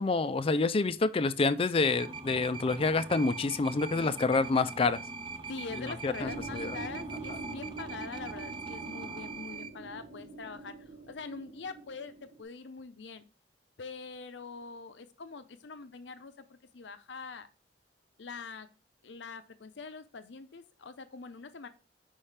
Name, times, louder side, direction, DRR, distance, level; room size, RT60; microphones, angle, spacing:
voice 1, 0.0-5.0 6.0-6.8, left 3 dB, 30° left, 0.4 m, -28 dB
sound 1, 1.8-9.7, right 4 dB, 25° right, 0.6 m, -42 dB
voice 2, 5.5-13.3 13.8-17.5 18.2-18.7 19.0-21.7, left 4 dB, 75° left, 0.7 m, -44 dB
sound 2, 6.2-12.4, right 3 dB, 60° right, 1.3 m, -45 dB
5.7 x 5.3 x 3.3 m
head